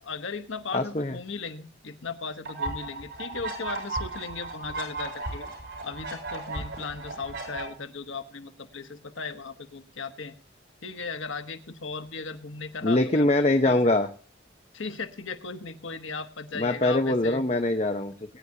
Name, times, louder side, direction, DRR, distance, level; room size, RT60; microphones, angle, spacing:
voice 1, 0.0-5.5 5.8-10.4 10.8-13.3 13.6-13.8 14.7-17.4, left 4 dB, 90° left, 8 dB, 1.2 m, -37 dB
voice 2, 0.7-1.1 12.8-14.1 16.5-18.1, left 2 dB, 35° left, 6 dB, 0.8 m, -23 dB
sound 1, 2.4-7.6, right 3 dB, 90° right, 7.8 m, -35 dB
21.5 x 9.8 x 2.8 m, 0.40 s
head